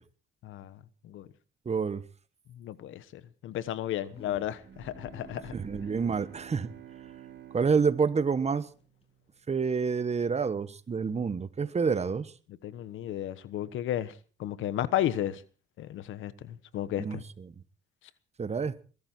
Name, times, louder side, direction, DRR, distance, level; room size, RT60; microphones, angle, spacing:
voice 1, 0.4-0.8 1.0-1.3 2.6-5.5 12.6-14.1 14.4-15.4 15.8-17.2, left 12 dB, 80° left, 1.2 m, -33 dB
voice 2, 1.6-2.0 5.5-6.7 7.5-8.7 9.5-12.3 17.0-17.5 18.4-18.8, right 5 dB, 35° right, 1.4 m, -28 dB
sound 1, 3.9-9.7, left 3 dB, 30° left, 3.9 m, -56 dB
Bowed string instrument, 4.5-9.3, right 11 dB, 70° right, 3.6 m, -50 dB
22.0 x 13.5 x 4.5 m
cardioid pair, 90°, 20 cm